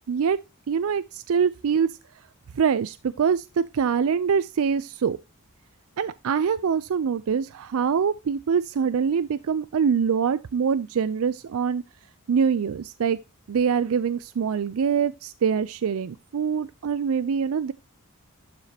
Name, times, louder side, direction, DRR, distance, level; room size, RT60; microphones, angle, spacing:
voice 1, 0.1-0.4 0.7-1.9 2.5-5.2 6.0-11.8 12.3-13.2 13.5-17.7, right 6 dB, 65° right, 0.4 m, -24 dB
12.0 x 4.9 x 2.8 m
head